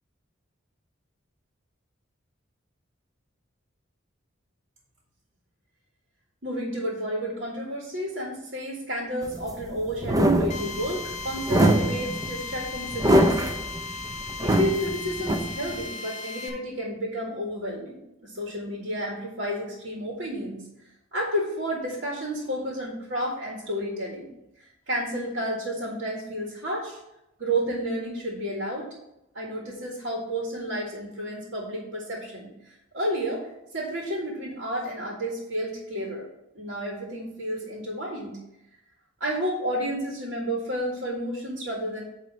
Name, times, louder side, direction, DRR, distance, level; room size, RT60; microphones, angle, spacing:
voice 1, 6.4-13.6 14.4-20.6 21.1-24.3 24.9-27.0 27.4-29.0 29.3-33.5 33.7-36.3 36.5-38.4 39.2-42.0, equal, 60° right, -3 dB, 1.8 m, -31 dB
sound 1, 9.2-15.9, right 1 dB, 15° right, 0.5 m, -24 dB
Drill, 10.5-16.5, left 5 dB, 40° left, 1.1 m, -36 dB
8.9 x 3.1 x 6.0 m, 0.87 s
head